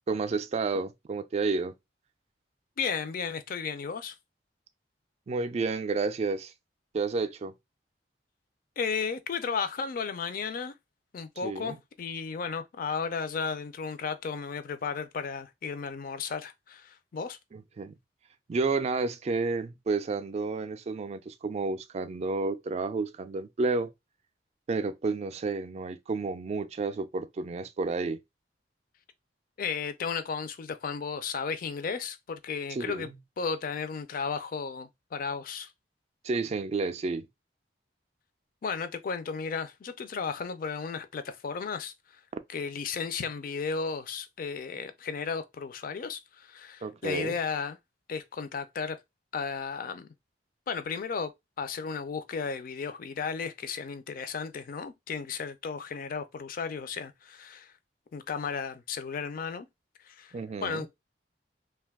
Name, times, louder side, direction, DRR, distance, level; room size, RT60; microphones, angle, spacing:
voice 1, 0.1-1.7 5.3-6.5 6.9-7.5 11.4-11.8 17.5-17.9 18.5-23.9 24.7-28.2 32.7-33.1 36.2-37.3 46.8-47.4 60.3-60.9, right 4 dB, 35° right, 0.3 m, -31 dB
voice 2, 2.8-4.2 8.8-10.7 11.1-17.4 29.6-33.1 33.4-35.7 38.6-42.2 42.5-47.8 48.1-49.0 49.3-50.1 50.7-51.3 51.6-57.7 58.1-59.7 60.0-60.4 60.6-60.9, left 5 dB, 50° left, 0.4 m, -34 dB
2.5 x 2.3 x 3.4 m
head